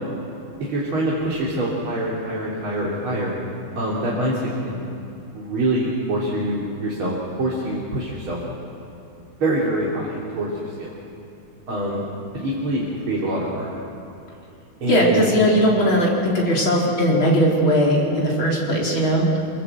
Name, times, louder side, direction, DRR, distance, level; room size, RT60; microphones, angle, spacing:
voice 1, 0.6-3.3 3.7-4.8 5.3-8.4 9.4-10.9 11.7-12.0 12.3-13.7 14.8-15.3, right 1 dB, 90° right, -5 dB, 4.1 m, -25 dB
voice 2, 14.8-19.3, equal, 75° left, -3 dB, 4.9 m, -19 dB
27.5 x 24.0 x 8.0 m, 2.7 s
omnidirectional pair, 2.2 m